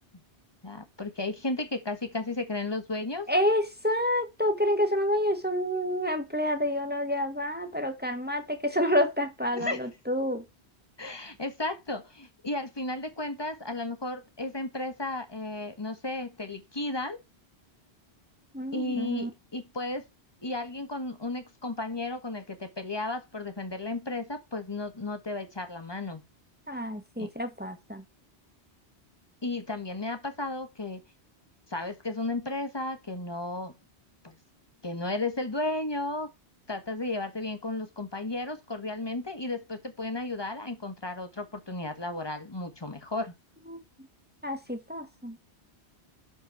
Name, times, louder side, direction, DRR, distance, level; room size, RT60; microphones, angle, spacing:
voice 1, 0.6-3.3 9.5-9.8 11.0-17.2 18.7-20.0 20.4-26.2 27.2-27.3 29.4-31.0 31.7-33.7 34.2-34.3 34.8-36.3 36.7-43.3, left 2 dB, 25° left, 1.7 m, -34 dB
voice 2, 3.3-10.4 18.5-19.3 26.7-28.0 43.7-43.8 44.4-45.3, equal, 10° right, 1.6 m, -28 dB
12.0 x 4.6 x 4.5 m
omnidirectional pair, 1.1 m